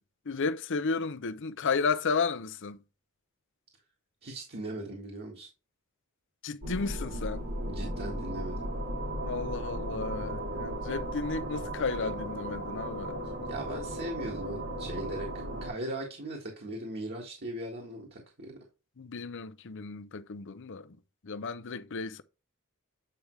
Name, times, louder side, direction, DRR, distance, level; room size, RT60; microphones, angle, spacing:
voice 1, 0.3-2.8 6.4-7.4 9.2-13.2 19.0-21.0 21.2-22.2, left 4 dB, 60° left, 0.7 m, -33 dB
voice 2, 4.2-5.5 7.6-8.7 13.2-15.3 15.6-18.6, right 1 dB, 50° right, 1.8 m, -39 dB
sound 1, 6.6-15.7, right 1 dB, 75° right, 4.0 m, -36 dB
8.6 x 5.2 x 3.2 m
head